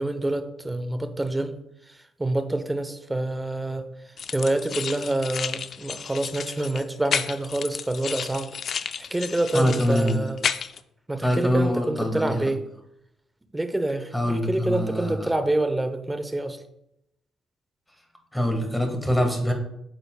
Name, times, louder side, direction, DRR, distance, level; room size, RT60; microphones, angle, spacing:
voice 1, 0.0-1.5 2.2-3.8 4.3-8.5 9.0-10.4 11.1-12.6 13.5-14.1 14.5-16.6, right 2 dB, 15° right, 9 dB, 0.7 m, -27 dB
sound 1, 4.2-10.8, left 7 dB, 55° left, 0.4 m, -32 dB
voice 2, 9.5-10.2 11.2-12.5 14.1-15.3 18.3-19.5, equal, 5° left, 4 dB, 1.5 m, -24 dB
8.9 x 6.7 x 2.2 m, 0.81 s
cardioid pair, 90°, 0 cm